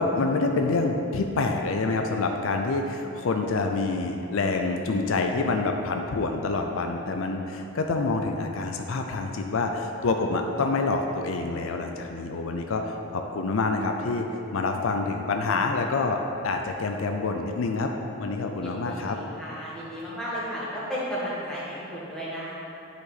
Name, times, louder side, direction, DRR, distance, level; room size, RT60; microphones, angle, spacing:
voice 1, 0.0-17.9 18.2-19.2, left 3 dB, 70° left, 3 dB, 0.5 m, -27 dB
voice 2, 18.6-22.5, equal, 5° left, -9 dB, 1.7 m, -34 dB
9.3 x 5.1 x 4.1 m, 2.8 s
head